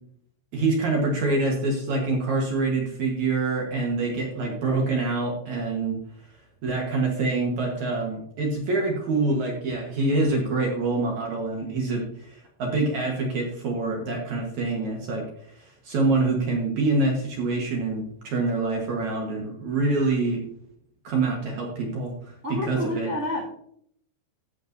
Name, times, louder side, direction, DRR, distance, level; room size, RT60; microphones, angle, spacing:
voice 1, 0.5-6.0 6.6-15.2 15.6-20.4 21.0-22.1 22.5-23.1, right 3 dB, 60° right, 0 dB, 2.0 m, -26 dB
voice 2, 22.4-23.5, left 1 dB, 30° right, -4 dB, 1.8 m, -29 dB
13.5 x 8.6 x 2.6 m, 0.68 s
omnidirectional pair, 5.1 m